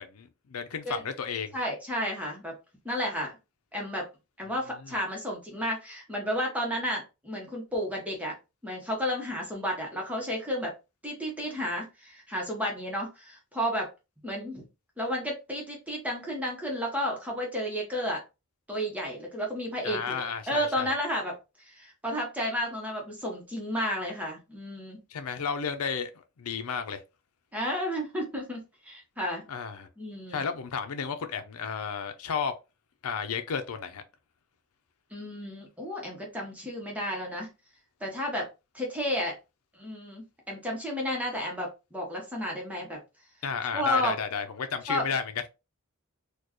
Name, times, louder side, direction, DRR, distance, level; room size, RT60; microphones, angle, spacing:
voice 1, 0.0-1.6 4.8-4.9 19.8-21.0 25.1-27.0 29.5-29.9 30.3-32.5 33.0-34.0 43.4-45.2, left 6 dB, 90° left, 0.6 m, -33 dB
voice 2, 1.5-2.5 2.8-3.3 3.7-4.1 4.4-8.3 8.6-10.7 11.0-13.9 14.2-14.6 15.0-18.2 18.7-25.0 27.5-29.4 30.0-30.4 35.1-37.5 38.0-38.5 38.7-39.4 39.8-43.0 43.7-44.1 44.9-45.1, equal, 5° right, 1.0 m, -32 dB
4.3 x 2.3 x 3.0 m
head